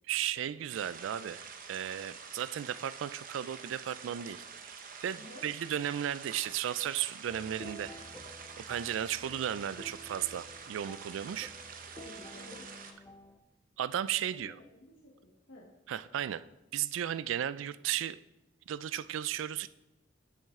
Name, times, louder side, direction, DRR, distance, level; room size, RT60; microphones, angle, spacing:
voice 1, 0.1-1.4 1.7-4.4 5.0-7.9 8.6-11.5 13.8-14.5 15.9-16.4 16.7-18.2 18.7-19.7, right 10 dB, 70° right, 15 dB, 0.3 m, -35 dB
sound 1, 0.7-12.9, right 6 dB, 45° right, 0.7 m, -47 dB
sound 2, 7.3-13.4, left 1 dB, 10° left, 0.5 m, -51 dB
voice 2, 11.9-12.7 14.3-14.4 14.7-15.7, left 1 dB, 80° left, -3 dB, 1.2 m, -52 dB
8.8 x 6.3 x 3.6 m, 0.95 s
head